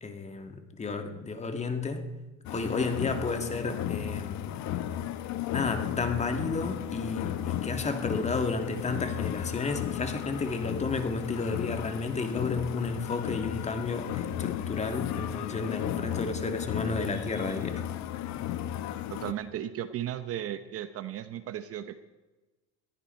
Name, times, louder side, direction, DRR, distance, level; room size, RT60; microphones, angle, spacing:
voice 1, 0.0-2.1 2.5-4.6 5.5-17.8, left 3 dB, 20° left, 6 dB, 1.9 m, -32 dB
sound 1, 2.4-19.3, left 11 dB, 50° left, 1.1 m, -34 dB
voice 2, 19.1-22.0, right 11 dB, 40° right, 12 dB, 0.9 m, -35 dB
21.5 x 15.0 x 4.4 m, 1.2 s
supercardioid pair, 125°, 36 cm